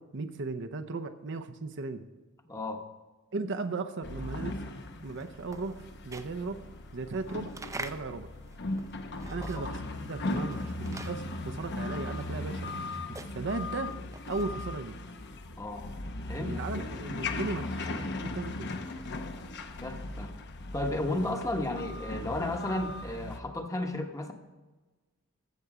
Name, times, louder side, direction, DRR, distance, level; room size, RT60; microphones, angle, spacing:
voice 1, 0.0-2.1 3.3-4.6 5.0-5.8 6.0-6.6 6.9-8.3 9.3-12.6 13.1-13.9 14.3-14.9 16.4-17.8 18.2-18.8, right 3 dB, 60° right, 7 dB, 0.7 m, -36 dB
voice 2, 2.4-2.9 9.4-9.6 15.6-15.9 16.3-16.9 19.8-20.3 20.7-24.3, left 1 dB, 15° left, 4 dB, 1.1 m, -33 dB
sound 1, 4.0-23.4, left 2 dB, 55° left, 0.8 m, -38 dB
sound 2, 4.9-9.9 10.2-14.7, right 3 dB, 15° right, 0.5 m, -46 dB
15.0 x 6.9 x 4.9 m, 1.2 s
head